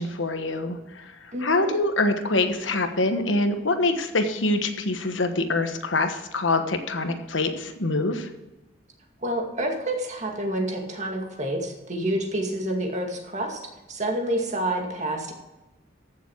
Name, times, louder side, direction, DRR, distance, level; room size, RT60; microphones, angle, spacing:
voice 1, 0.0-1.1 1.4-8.3, left 2 dB, 85° left, 7 dB, 1.3 m, -25 dB
voice 2, 1.3-1.7 9.2-15.3, right 1 dB, 40° right, 2 dB, 2.2 m, -28 dB
14.0 x 7.3 x 4.7 m, 1.1 s
head